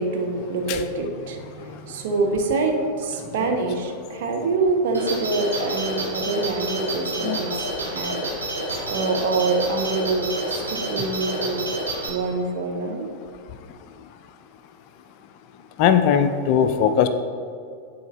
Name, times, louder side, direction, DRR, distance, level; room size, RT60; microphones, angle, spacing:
voice 1, 0.0-7.7 7.9-8.1 8.9-11.6 12.1-13.1, right 3 dB, 55° right, 2 dB, 0.9 m, -25 dB
sound 1, 4.9-12.1, right 2 dB, 80° right, 1.6 m, -29 dB
voice 2, 7.2-7.7 8.1-8.2 8.8-8.9 15.8-17.1, left 8 dB, 45° left, 9 dB, 0.4 m, -20 dB
10.0 x 4.3 x 3.0 m, 2.3 s
figure-of-eight pair, 90°, 0 cm